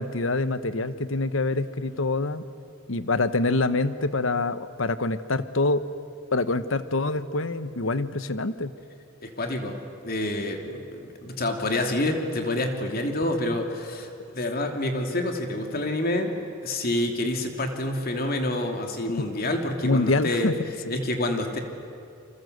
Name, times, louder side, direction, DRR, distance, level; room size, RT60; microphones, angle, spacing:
voice 1, 0.0-2.4 2.9-5.8 6.3-8.7 19.8-21.0, left 2 dB, 80° left, 12 dB, 1.1 m, -26 dB
voice 2, 9.2-9.8 10.0-16.4 16.6-20.5 20.9-21.6, left 1 dB, 50° left, 4 dB, 2.9 m, -28 dB
28.5 x 25.5 x 8.0 m, 2.4 s
head